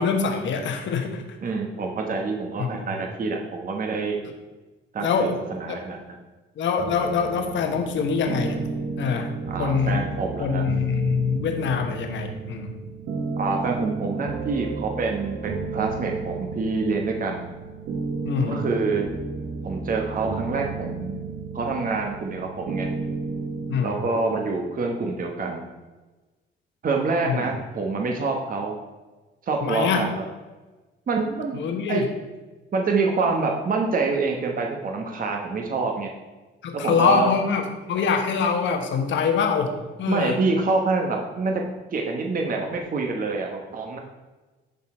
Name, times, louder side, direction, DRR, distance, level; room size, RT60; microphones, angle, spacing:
voice 1, 0.0-1.2 2.6-2.9 4.2-4.3 5.0-5.4 5.7-5.8 6.6-8.6 9.0-9.3 9.6-10.0 10.4-12.7 18.2-18.6 23.7-24.0 27.2-27.4 29.6-30.0 31.5-32.1 36.6-40.4, left 6 dB, 70° left, 4 dB, 1.2 m, -24 dB
voice 2, 1.4-4.2 4.9-6.2 9.5-10.6 13.4-17.5 18.5-19.1 19.6-21.2 21.5-22.9 23.8-25.6 26.8-28.8 29.4-30.2 31.1-31.6 31.9-32.1 32.7-36.1 36.7-37.3 40.1-41.6 41.9-44.0, right 4 dB, 45° right, 2 dB, 1.1 m, -26 dB
sound 1, 6.8-23.8, right 4 dB, 70° right, 1.1 m, -33 dB
11.0 x 4.1 x 4.3 m, 1.2 s
cardioid pair, 90°, 20 cm